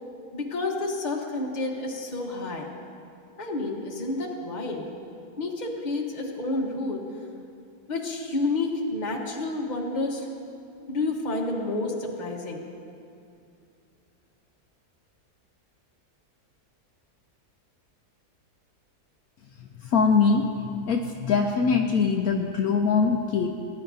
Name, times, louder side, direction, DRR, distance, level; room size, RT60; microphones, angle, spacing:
voice 1, 0.3-2.7 3.4-4.9 5.4-7.1 7.9-10.3 10.9-12.6, left 2 dB, 30° left, 0 dB, 1.1 m, -29 dB
voice 2, 19.8-20.5 20.9-23.5, left 5 dB, 70° left, 2 dB, 1.0 m, -22 dB
19.0 x 10.0 x 2.7 m, 2.5 s
omnidirectional pair, 1.7 m